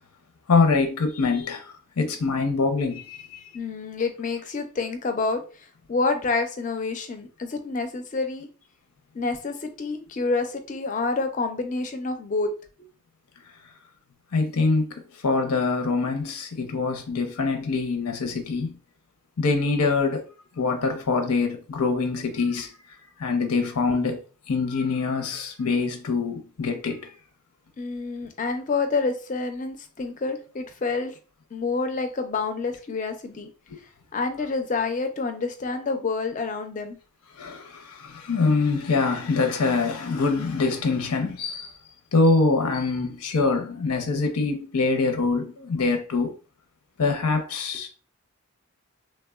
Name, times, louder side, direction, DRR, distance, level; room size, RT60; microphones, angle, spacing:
voice 1, 0.5-3.4 14.3-14.9 15.2-18.8 19.4-20.3 20.6-22.7 23.2-24.2 24.5-27.1 37.4-41.7 42.1-46.3 47.0-47.9, left 4 dB, 85° left, 0.6 m, -24 dB
voice 2, 3.5-5.4 5.9-8.5 9.1-12.5 27.8-31.1 31.5-33.5 34.1-37.0, left 3 dB, 35° left, 0.4 m, -28 dB
3.2 x 2.1 x 2.2 m
head